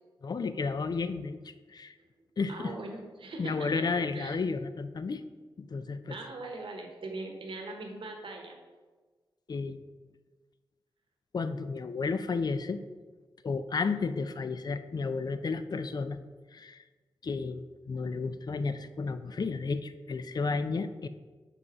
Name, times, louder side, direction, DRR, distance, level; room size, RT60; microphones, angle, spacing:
voice 1, 0.2-1.9 2.4-2.7 3.4-5.2 5.6-6.2 9.5-9.8 11.3-12.8 13.4-16.2 16.5-16.8 17.2-21.1, left 4 dB, 50° left, 11 dB, 0.4 m, -32 dB
voice 2, 2.5-3.8 4.1-4.3 6.1-8.6, right 2 dB, 75° right, 2 dB, 1.2 m, -40 dB
5.4 x 4.1 x 5.9 m, 1.3 s
wide cardioid pair, 75°, 9 cm